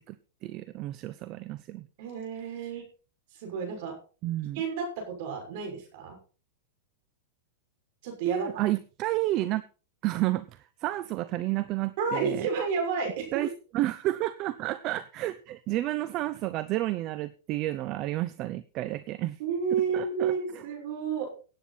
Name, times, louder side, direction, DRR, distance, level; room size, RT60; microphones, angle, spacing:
voice 1, 0.4-1.8 4.2-4.6 8.3-9.6 10.0-12.5 13.3-13.5 13.7-19.4 19.9-20.6, right 16 dB, 40° right, 15 dB, 0.7 m, -31 dB
voice 2, 2.0-2.8 3.3-3.9 4.5-6.2 8.0-8.6 12.0-13.4 19.4-21.3, right 5 dB, 55° right, 3 dB, 6.0 m, -31 dB
17.0 x 9.0 x 4.2 m, 0.37 s
hypercardioid pair, 135°, 0 cm